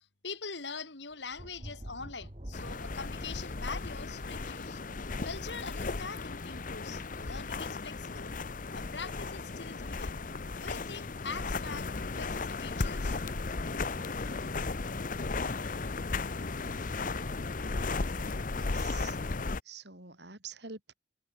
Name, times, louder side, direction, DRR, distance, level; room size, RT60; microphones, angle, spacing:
voice 1, 0.0-4.8 5.2-8.4 8.7-10.2 10.5-13.2, left 4 dB, 70° left, 2.9 m, -43 dB
Thunder, 1.1-18.6, equal, 35° right, 3.0 m, -53 dB
sound 1, 2.5-19.6, left 3 dB, 45° left, 0.8 m, -35 dB
voice 2, 18.5-19.2 19.6-20.9, right 5 dB, 65° right, 5.5 m, -47 dB
head